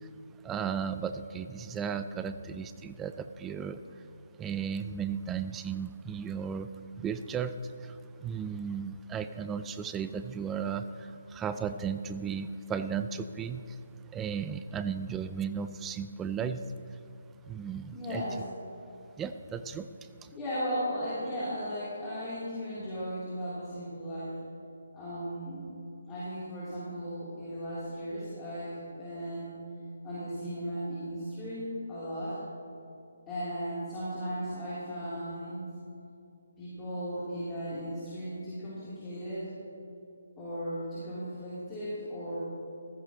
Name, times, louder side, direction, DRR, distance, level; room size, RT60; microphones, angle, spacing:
voice 1, 0.4-3.8 4.4-6.7 7.0-13.8 14.1-16.6 17.4-18.2 19.2-19.9 20.2-20.3, right 7 dB, 10° right, 11 dB, 0.4 m, -35 dB
voice 2, 17.9-18.5 20.3-24.4 24.9-25.6 26.1-29.6 30.0-32.4 33.3-35.7 36.6-39.5 40.4-42.4, equal, 15° left, -12 dB, 3.5 m, -36 dB
14.5 x 14.5 x 3.1 m, 2.7 s
figure-of-eight pair, 150°, 0 cm